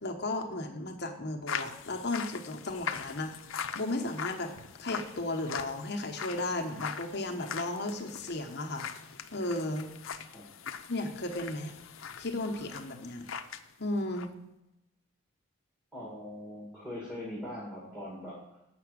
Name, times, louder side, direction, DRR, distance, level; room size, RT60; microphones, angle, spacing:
voice 1, 0.0-3.3 3.8-4.5 4.8-8.9 9.3-9.9 10.9-11.8 12.2-13.2 13.8-14.3, left 2 dB, 55° left, 3 dB, 1.1 m, -34 dB
sound 1, 1.5-13.7 13.9-14.3, left 7 dB, 85° left, 0.6 m, -41 dB
voice 2, 15.9-18.6, left 1 dB, 5° right, -6 dB, 2.0 m, -41 dB
7.9 x 5.9 x 6.3 m, 0.91 s
head